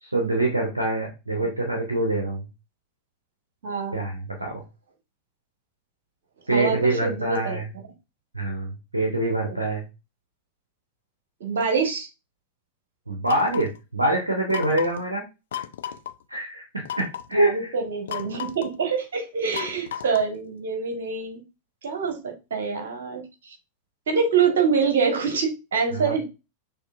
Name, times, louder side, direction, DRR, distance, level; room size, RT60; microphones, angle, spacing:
voice 1, 0.0-2.5 3.9-4.6 6.5-7.7 8.3-9.9 13.1-15.2 16.3-17.7 25.9-26.2, right 2 dB, 80° right, 1 dB, 0.8 m, -25 dB
voice 2, 3.6-4.0 6.5-7.6 11.4-12.1 17.3-21.4 21.8-23.5 24.1-26.2, right 5 dB, 60° right, 4 dB, 1.3 m, -25 dB
sound 1, 13.3-13.8 14.5-15.0 15.5-16.1 16.8-17.3 18.1-18.7 19.5-20.4, left 9 dB, 60° left, 0.3 m, -34 dB
6.3 x 2.9 x 2.4 m, 0.27 s
figure-of-eight pair, 90°, 0 cm